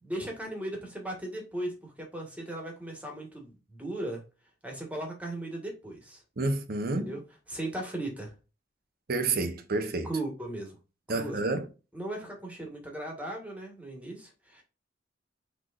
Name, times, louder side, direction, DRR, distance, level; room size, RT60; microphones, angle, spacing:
voice 1, 0.0-4.2 4.6-6.2 7.0-7.2 7.5-8.3 10.0-10.8 11.1-11.4 11.9-14.6, right 1 dB, 10° right, 1.6 m, -37 dB
voice 2, 6.4-7.1 9.1-10.1 11.1-11.7, right 3 dB, 55° right, 0.8 m, -29 dB
6.1 x 3.3 x 2.4 m
head